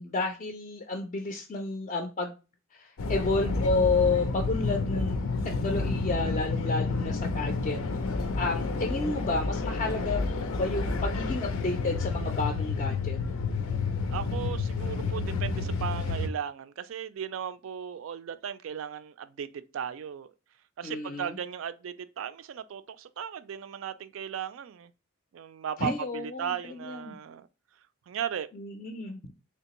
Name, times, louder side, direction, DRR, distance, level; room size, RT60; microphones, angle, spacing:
voice 1, 0.0-2.3 2.7-5.2 5.6-7.8 8.0-10.2 10.5-13.2 20.8-21.4 25.8-27.2 28.5-29.3, left 3 dB, 35° left, 0.4 m, -31 dB
sound 1, 3.0-16.3, left 3 dB, 90° left, 0.5 m, -30 dB
voice 2, 14.1-20.3 20.8-24.9 25.3-27.5 28.1-28.5, right 8 dB, 70° right, 0.3 m, -36 dB
3.4 x 2.8 x 2.9 m
head